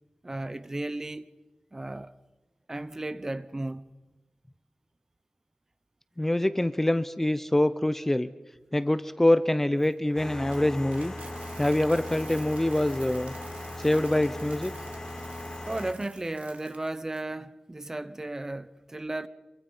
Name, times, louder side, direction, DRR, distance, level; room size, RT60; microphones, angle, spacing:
voice 1, 0.2-1.3 1.7-2.1 2.7-3.8 15.7-19.3, right 2 dB, 25° right, 0.9 m, -34 dB
voice 2, 6.2-8.3 8.7-11.1 11.6-13.3 13.8-14.7, left 1 dB, 15° left, 0.7 m, -25 dB
Coin (dropping), 9.8-17.2, right 4 dB, 80° right, 2.2 m, -50 dB
sound 1, 10.2-15.9, left 1 dB, 30° left, 3.6 m, -39 dB
26.5 x 24.0 x 5.6 m
wide cardioid pair, 115°, 2 cm